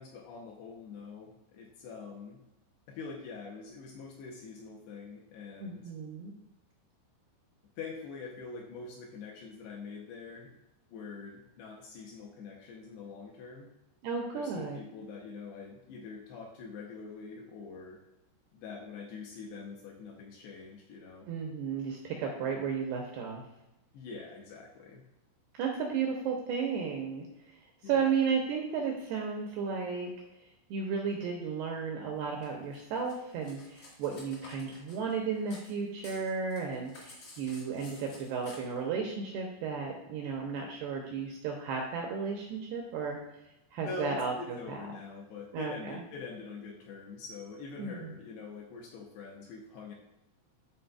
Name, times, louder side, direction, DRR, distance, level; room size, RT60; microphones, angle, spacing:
voice 1, 0.0-2.4 2.9-5.8 7.8-10.5 10.9-13.7 14.3-18.0 18.5-21.3 23.9-25.0 27.8-28.1 43.8-49.9, left 4 dB, 80° left, -1 dB, 2.5 m, -44 dB
voice 2, 5.6-6.3 14.0-14.8 21.3-23.4 25.5-27.3 27.9-30.1 30.7-43.2 43.7-44.8 45.5-46.0 47.8-48.1, right 5 dB, 85° right, 0 dB, 2.3 m, -34 dB
Cutlery silverware, 32.4-35.7 36.0-38.6, left 2 dB, 65° left, 1.4 m, -52 dB
11.5 x 4.0 x 2.3 m, 0.94 s
omnidirectional pair, 5.5 m